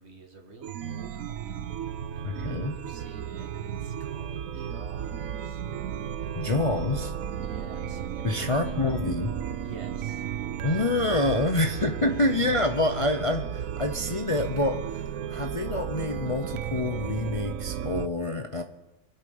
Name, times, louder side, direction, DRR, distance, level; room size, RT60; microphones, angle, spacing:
voice 1, 0.0-6.9 7.2-8.8 9.5-10.5 12.1-12.2, right 4 dB, 50° right, 5 dB, 1.8 m, -49 dB
Chime, 0.6-18.1, right 9 dB, 80° right, 1.2 m, -34 dB
voice 2, 2.2-2.8 6.3-7.1 8.2-9.4 10.6-18.6, left 2 dB, 30° left, 5 dB, 0.7 m, -27 dB
25.0 x 8.6 x 5.5 m, 1.1 s
omnidirectional pair, 1.4 m